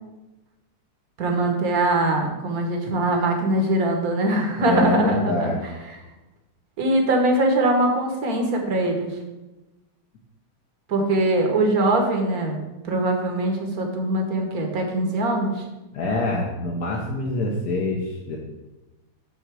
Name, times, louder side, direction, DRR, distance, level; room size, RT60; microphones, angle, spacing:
voice 1, 1.2-5.5 6.8-9.2 10.9-15.6, right 2 dB, 50° right, 3 dB, 1.4 m, -22 dB
voice 2, 4.6-5.6 15.9-18.4, left 2 dB, 55° left, -2 dB, 1.2 m, -25 dB
7.9 x 3.9 x 6.1 m, 1.0 s
omnidirectional pair, 2.4 m